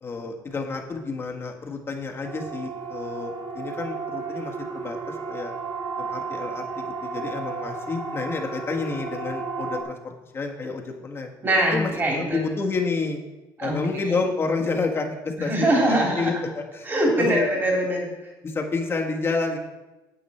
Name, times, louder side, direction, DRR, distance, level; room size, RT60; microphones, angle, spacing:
voice 1, 0.0-5.5 6.0-11.3 11.7-11.9 12.3-13.2 13.6-16.9 17.2-17.5 18.4-19.6, left 4 dB, 30° left, 1 dB, 1.5 m, -29 dB
Siren, 2.2-9.8, right 4 dB, 65° right, 1.9 m, -33 dB
voice 2, 11.4-12.4 13.6-13.8 14.1-14.2 15.4-16.3 16.8-18.1, right 1 dB, 25° right, -1 dB, 3.3 m, -22 dB
9.7 x 8.6 x 4.4 m, 1.1 s
cardioid pair, 110°, 8 cm